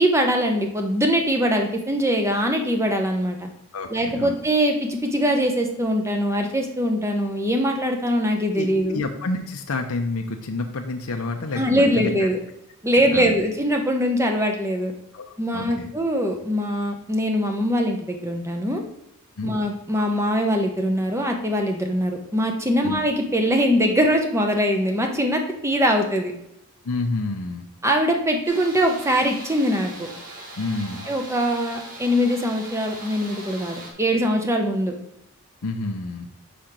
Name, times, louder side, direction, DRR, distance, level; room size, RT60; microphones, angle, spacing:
voice 1, 0.0-3.5 3.9-9.0 11.5-12.4 12.8-14.9 15.4-18.8 19.4-26.3 27.8-30.1 31.1-34.9, equal, 15° right, 3 dB, 0.9 m, -22 dB
voice 2, 3.7-4.3 8.5-12.1 13.1-13.3 15.1-15.9 19.4-19.5 22.8-23.0 26.8-27.7 30.6-31.1 35.6-36.3, left 3 dB, 80° left, 3 dB, 0.7 m, -29 dB
sound 1, 28.4-33.9, right 1 dB, 40° right, 1.5 m, -40 dB
5.1 x 5.1 x 5.9 m, 0.78 s
head